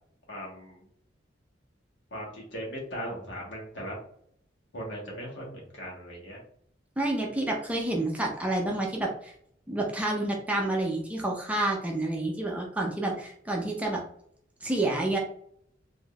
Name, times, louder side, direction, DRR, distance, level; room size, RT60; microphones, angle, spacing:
voice 1, 0.3-0.8 2.1-4.0 4.7-6.4, equal, 70° left, -3 dB, 1.3 m, -38 dB
voice 2, 7.0-9.3 9.7-14.0 14.6-15.2, right 2 dB, 10° right, -1 dB, 0.5 m, -29 dB
3.5 x 2.6 x 2.3 m, 0.65 s
head